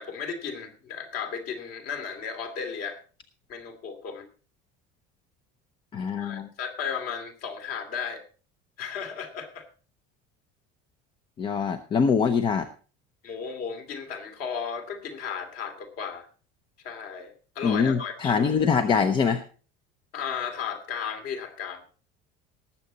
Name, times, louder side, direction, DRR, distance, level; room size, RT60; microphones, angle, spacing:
voice 1, 0.0-3.0 3.5-4.3 6.2-8.2 8.8-9.7 13.2-16.3 16.8-18.3 20.1-21.8, left 6 dB, 45° left, 6 dB, 2.6 m, -34 dB
voice 2, 5.9-6.5 11.4-12.7 17.6-19.4, left 6 dB, 25° left, 9 dB, 0.7 m, -24 dB
19.0 x 7.6 x 4.0 m, 0.38 s
cardioid pair, 170°, 20 cm